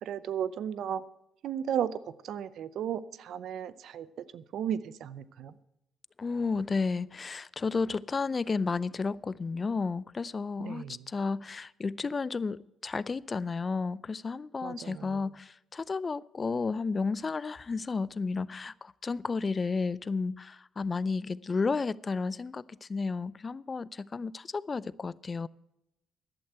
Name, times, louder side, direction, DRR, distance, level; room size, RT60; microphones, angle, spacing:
voice 1, 0.0-1.0 1.4-1.9 2.2-5.5 10.6-11.0 14.6-15.2, right 9 dB, 75° right, 0.6 m, -35 dB
voice 2, 6.2-25.5, left 4 dB, 35° left, 0.4 m, -32 dB
11.5 x 8.0 x 9.0 m
cardioid pair, 90°, 0 cm